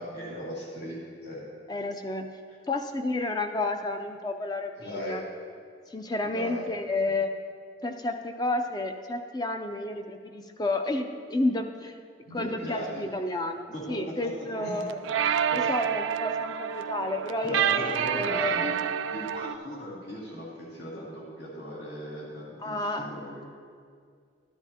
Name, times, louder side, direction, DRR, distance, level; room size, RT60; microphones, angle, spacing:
voice 1, 0.0-1.5 4.7-5.2 6.2-6.7 12.2-13.0 13.7-14.3 14.6-14.9 15.5-15.7 17.4-18.7 19.1-23.5, equal, 65° left, -6 dB, 2.2 m, -37 dB
voice 2, 1.7-2.3 2.7-5.3 5.9-7.3 7.8-11.9 12.3-15.0 15.5-18.8 22.6-23.1, left 2 dB, 20° left, 6 dB, 0.5 m, -31 dB
sound 1, 14.6-19.5, right 8 dB, 80° right, 0.3 m, -28 dB
12.5 x 10.5 x 2.9 m, 2.2 s
head